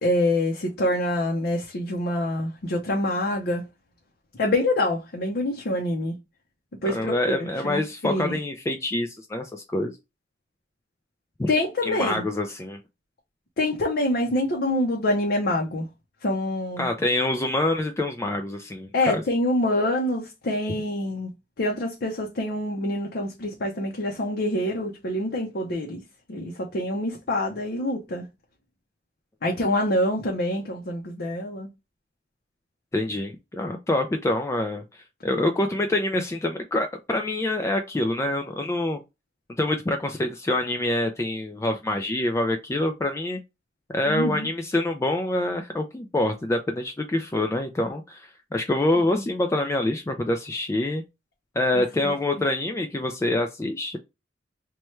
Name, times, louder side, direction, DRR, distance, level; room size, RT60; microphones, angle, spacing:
voice 1, 0.0-3.6 4.4-6.1 6.8-7.1 7.4-8.4 11.5-12.2 13.6-15.9 16.2-16.9 18.9-21.3 21.6-26.0 26.3-28.2 29.4-31.7 44.1-44.5 49.1-49.2 51.7-52.1, left 1 dB, 60° left, 0.6 m, -26 dB
voice 2, 6.8-10.0 11.4-11.5 11.8-12.8 16.8-19.2 32.9-39.0 39.6-43.4 43.9-51.0 51.6-54.0, left 1 dB, 15° left, 0.3 m, -26 dB
3.1 x 2.2 x 4.2 m
head